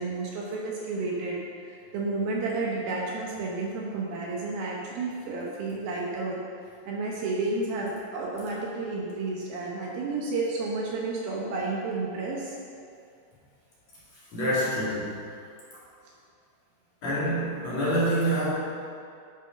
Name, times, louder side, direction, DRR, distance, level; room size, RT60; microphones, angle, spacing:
voice 1, 0.0-1.4 1.7-6.4 6.9-12.6, right 3 dB, 70° right, -3 dB, 2.7 m, -31 dB
voice 2, 14.3-15.1 17.0-18.5, right 1 dB, 45° left, -9 dB, 3.2 m, -26 dB
11.5 x 6.4 x 5.3 m, 2.3 s
omnidirectional pair, 4.8 m